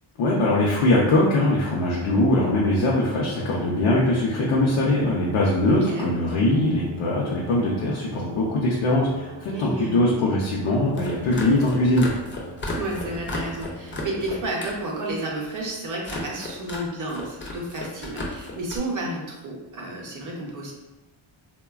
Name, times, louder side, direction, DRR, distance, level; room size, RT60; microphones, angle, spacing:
voice 1, 0.2-12.1, left 1 dB, 70° left, -4 dB, 0.6 m, -21 dB
Brass instrument, 2.1-14.4, right 3 dB, 80° right, 0.6 m, -43 dB
voice 2, 5.7-6.1 9.5-10.0 12.7-20.7, right 1 dB, 40° right, -2 dB, 0.6 m, -31 dB
sound 1, 10.8-14.8 15.1-15.6 16.0-16.8 17.1-18.8, left 2 dB, 30° left, 0.3 m, -34 dB
3.2 x 2.1 x 2.3 m, 1.0 s
wide cardioid pair, 180°, 48 cm